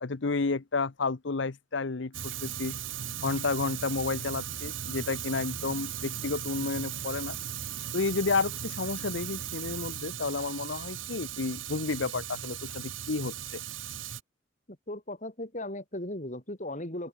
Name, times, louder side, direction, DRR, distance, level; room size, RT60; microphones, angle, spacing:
voice 1, 0.0-2.8 3.2-7.4 7.9-13.6, left 4 dB, 65° left, 0.8 m, -31 dB
Fire, 2.1-14.2, right 9 dB, 80° right, 1.3 m, -37 dB
voice 2, 14.7-17.1, left 1 dB, 40° left, 6.4 m, -37 dB
open air
head